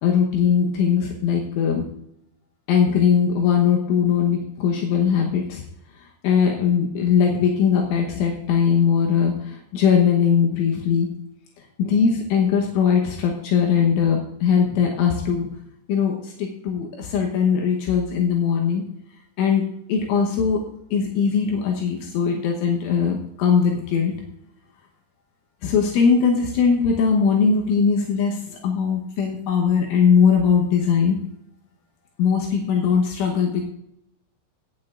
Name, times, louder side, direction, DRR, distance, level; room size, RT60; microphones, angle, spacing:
voice 1, 0.0-1.9 2.7-5.6 6.2-11.1 11.8-15.5 15.9-18.8 19.4-19.6 19.9-20.6 20.9-24.2 25.6-31.2 32.2-33.6, left 6 dB, 80° left, 0 dB, 3.5 m, -20 dB
18.0 x 8.7 x 2.5 m, 0.77 s
omnidirectional pair, 5.7 m